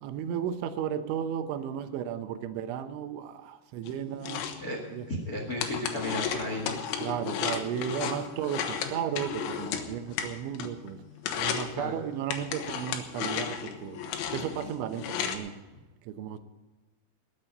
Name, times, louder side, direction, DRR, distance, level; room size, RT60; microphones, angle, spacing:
voice 1, 0.0-4.5 4.9-5.1 7.0-11.0 11.4-14.0 14.3-15.6 16.1-16.4, right 9 dB, 85° right, 3.3 m, -34 dB
sound 1, 3.9-10.9 11.2-11.7 12.3-15.4, left 8 dB, 90° left, 3.8 m, -34 dB
voice 2, 5.1-6.8 11.7-12.0, left 1 dB, 65° left, 0.9 m, -34 dB
20.0 x 8.7 x 5.3 m
omnidirectional pair, 5.4 m